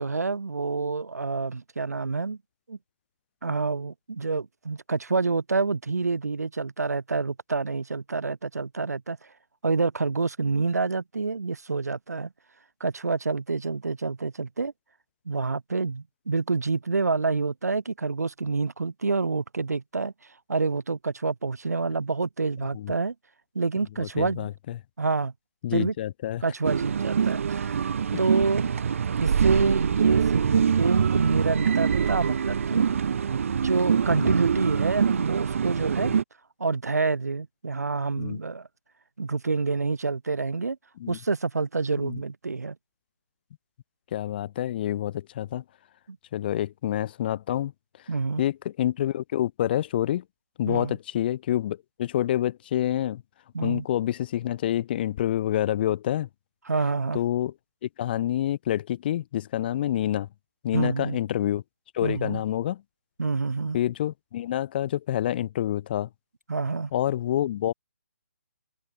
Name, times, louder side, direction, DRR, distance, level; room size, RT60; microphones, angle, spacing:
voice 1, 0.0-2.4 2.7-2.8 3.4-9.2 9.6-12.3 12.8-14.7 15.3-20.1 20.5-23.1 23.5-24.5 25.0-25.3 25.7-25.9 26.4-27.9 28.2-28.7 29.2-32.9 33.6-36.1 36.6-38.7 39.2-40.8 41.1-42.8 46.1-46.2 48.1-48.4 50.7-51.0 53.5-53.9 56.7-57.2 60.7-61.2 62.0-62.4 63.2-63.8 66.5-66.9, right 4 dB, 80° right, 2.3 m, -27 dB
voice 2, 24.0-24.8 25.6-26.4 34.1-34.3 36.0-36.2 38.2-38.4 41.0-41.2 42.0-42.2 44.1-45.6 46.3-47.7 48.4-50.2 50.6-53.2 53.6-56.3 57.1-57.5 57.8-60.3 60.6-61.6 61.9-62.8 63.7-66.1 66.9-67.7, left 12 dB, 40° left, 5.5 m, -27 dB
sound 1, 26.6-36.2, right 7 dB, 55° right, 1.7 m, -24 dB
open air
hypercardioid pair, 150°, 9 cm